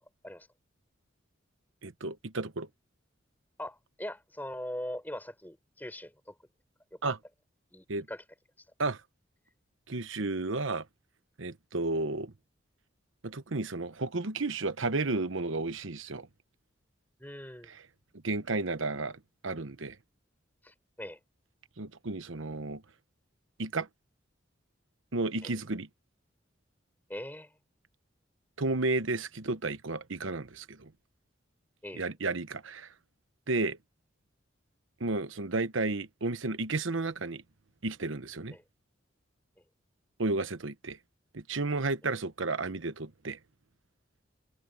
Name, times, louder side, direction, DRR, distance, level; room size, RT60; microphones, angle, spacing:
voice 1, 1.8-2.7 7.0-7.2 7.9-8.1 8.8-9.0 9.9-10.9 11.4-12.3 13.2-16.3 17.7-17.8 18.2-20.0 21.8-22.8 23.6-23.9 25.1-25.9 28.6-30.9 31.9-32.9 33.5-33.8 35.0-37.4 37.8-38.5 40.2-41.0 41.3-43.4, right 3 dB, 80° right, 1.0 m, -32 dB
voice 2, 3.6-6.3 7.0-7.1 7.7-8.2 17.2-17.7 20.6-21.2 25.4-25.5 27.1-27.5 31.8-32.1 38.5-38.6 42.0-42.1, left 1 dB, 10° left, 4.7 m, -41 dB
head